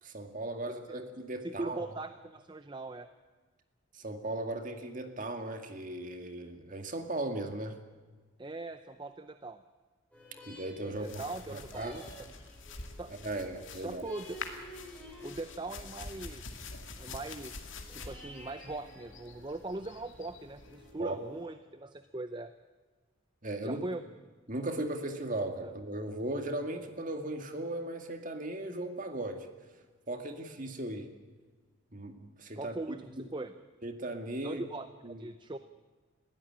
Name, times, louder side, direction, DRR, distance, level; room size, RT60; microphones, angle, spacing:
voice 1, 0.0-1.8 3.9-7.8 10.4-11.1 11.5-12.0 13.2-14.0 21.0-21.2 23.4-23.8 24.5-29.5 30.1-31.1 31.9-32.7 33.1-33.3 33.8-34.6 35.0-35.3, right 1 dB, 40° right, 6 dB, 2.1 m, -37 dB
voice 2, 0.7-1.1 1.4-3.1 8.4-9.6 10.9-12.4 13.0-13.1 13.7-14.4 15.2-16.7 17.0-22.5 23.6-24.0 25.6-25.7 32.5-33.5 34.4-35.6, right 2 dB, 20° right, 10 dB, 0.6 m, -41 dB
sound 1, 10.1-21.4, equal, 5° left, 7.9 m, -53 dB
sound 2, 10.9-20.9, left 4 dB, 65° left, 2.4 m, -47 dB
21.5 x 15.5 x 8.7 m, 1.4 s
head